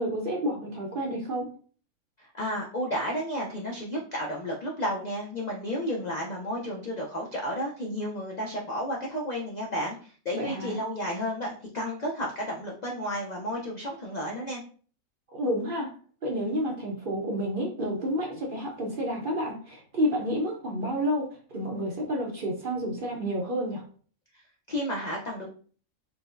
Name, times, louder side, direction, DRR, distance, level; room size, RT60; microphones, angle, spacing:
voice 1, 0.0-1.5 10.3-10.8 15.3-15.9 16.2-23.8, equal, 55° right, 0 dB, 0.6 m, -30 dB
voice 2, 2.2-11.5 11.7-14.6 24.7-25.5, equal, 85° left, -2 dB, 0.3 m, -32 dB
4.8 x 2.0 x 2.5 m, 0.43 s
omnidirectional pair, 1.5 m